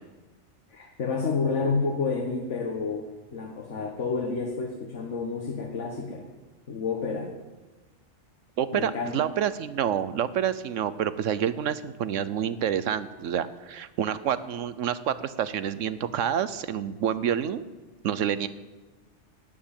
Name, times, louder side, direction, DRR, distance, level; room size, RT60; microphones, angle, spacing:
voice 1, 0.7-6.3 6.7-7.3 8.7-9.2, left 4 dB, 75° left, 1 dB, 1.7 m, -30 dB
voice 2, 8.6-17.6 18.0-18.5, right 9 dB, 85° right, 14 dB, 1.1 m, -28 dB
12.5 x 9.7 x 8.8 m, 1.2 s
omnidirectional pair, 1.2 m